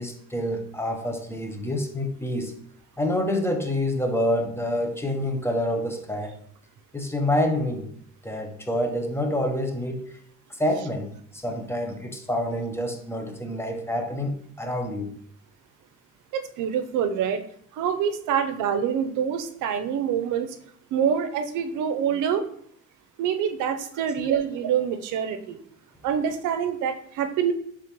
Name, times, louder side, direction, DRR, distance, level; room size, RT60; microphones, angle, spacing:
voice 1, 0.0-2.5 3.0-6.3 6.9-7.9 8.2-10.0 10.6-15.1, left 1 dB, 10° left, 3 dB, 0.7 m, -27 dB
voice 2, 16.3-17.4 17.7-20.6 20.9-22.4 23.2-25.6 26.0-27.5, right 8 dB, 85° right, 8 dB, 0.6 m, -26 dB
5.0 x 3.4 x 2.9 m, 0.64 s
cardioid pair, 90°, 30 cm